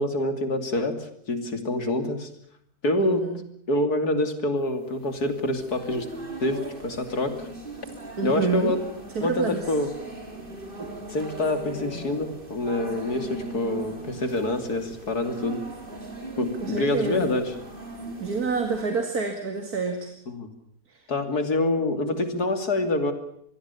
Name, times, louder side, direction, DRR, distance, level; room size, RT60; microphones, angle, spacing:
voice 1, 0.0-2.3 2.8-3.2 3.7-6.1 6.4-7.3 8.2-8.8 9.2-9.9 11.1-15.6 16.4-17.5 20.3-20.5 21.1-23.1, left 2 dB, 90° left, 8 dB, 3.4 m, -26 dB
voice 2, 3.0-3.4 8.2-8.7 9.1-9.7 10.8-10.9 16.6-17.3 18.2-20.2 20.9-21.1, right 4 dB, 75° right, 5 dB, 2.7 m, -28 dB
sound 1, 4.8-18.8, right 2 dB, 35° right, 4.1 m, -39 dB
26.0 x 20.5 x 7.0 m, 0.68 s
omnidirectional pair, 1.6 m